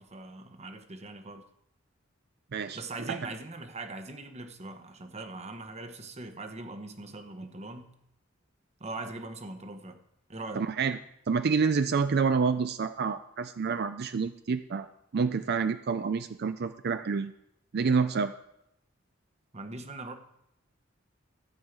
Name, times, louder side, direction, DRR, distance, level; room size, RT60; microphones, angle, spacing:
voice 1, 0.0-1.4 2.7-7.9 8.8-10.0 10.3-10.7 19.5-20.2, right 2 dB, 35° right, 7 dB, 1.1 m, -41 dB
voice 2, 10.6-11.0 11.3-17.3 17.7-18.3, right 5 dB, 55° right, 11 dB, 0.4 m, -28 dB
13.5 x 5.4 x 8.1 m, 0.79 s
head